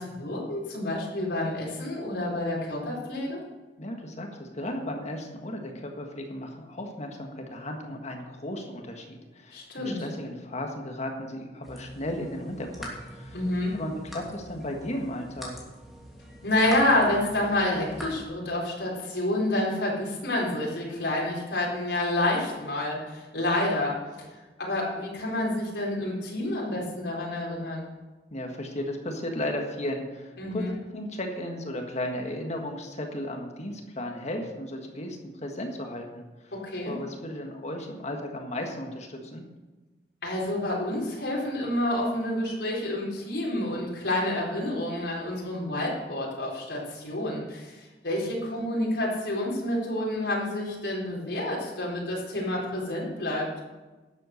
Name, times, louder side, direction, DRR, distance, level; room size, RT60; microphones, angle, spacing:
voice 1, 0.0-3.4 9.5-10.1 13.3-13.8 16.4-24.0 24.6-27.9 30.4-30.7 36.5-36.9 40.2-53.5, left 1 dB, 75° left, -3 dB, 4.3 m, -28 dB
voice 2, 3.8-13.4 13.7-15.5 28.3-30.6 30.9-36.5 36.8-39.4, left 1 dB, 40° left, 3 dB, 1.6 m, -35 dB
sound 1, 11.6-18.3, right 1 dB, ahead, 2.9 m, -43 dB
12.0 x 8.0 x 6.5 m, 1.2 s
head